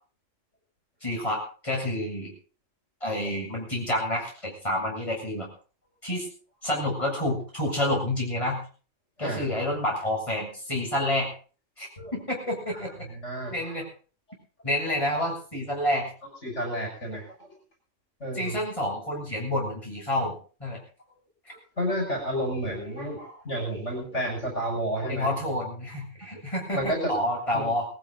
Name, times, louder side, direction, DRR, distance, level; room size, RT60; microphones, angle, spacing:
voice 1, 1.0-2.3 3.0-5.5 6.0-6.3 6.6-8.6 9.2-11.3 11.8-12.9 13.5-13.9 14.6-16.1 18.3-20.8 25.1-27.9, left 1 dB, 25° left, -2 dB, 8.1 m, -29 dB
voice 2, 9.2-9.5 12.0-12.1 13.1-13.7 16.4-17.5 18.2-18.6 21.8-25.3 26.7-27.1 27.5-27.7, equal, 65° left, 0 dB, 6.8 m, -31 dB
20.5 x 15.0 x 4.1 m, 0.39 s
omnidirectional pair, 1.3 m